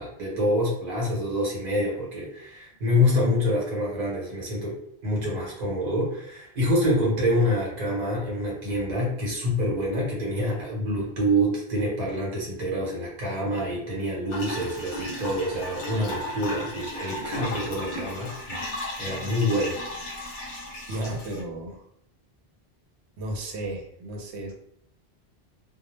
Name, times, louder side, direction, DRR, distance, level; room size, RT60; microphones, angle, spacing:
voice 1, 0.0-4.8 5.0-19.8, left 1 dB, 45° right, -4 dB, 0.9 m, -26 dB
sound 1, 14.3-21.4, left 1 dB, 55° left, 0.7 m, -35 dB
voice 2, 20.9-21.8 23.2-24.6, right 1 dB, 85° right, 2 dB, 0.9 m, -33 dB
2.1 x 2.0 x 3.0 m, 0.73 s
omnidirectional pair, 1.1 m